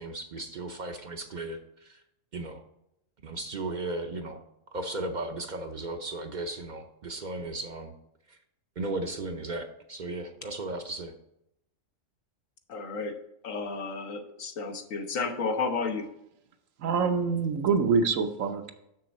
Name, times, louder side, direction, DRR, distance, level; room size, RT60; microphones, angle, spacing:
voice 1, 0.0-1.6 2.3-2.6 3.2-4.4 4.7-7.9 8.8-11.1, right 2 dB, 45° right, 6 dB, 0.6 m, -35 dB
voice 2, 12.7-13.1 13.4-16.0, left 4 dB, 85° left, 5 dB, 1.4 m, -32 dB
voice 3, 16.8-18.7, right 5 dB, 80° right, 7 dB, 1.2 m, -25 dB
6.9 x 6.7 x 4.2 m, 0.81 s
omnidirectional pair, 1.3 m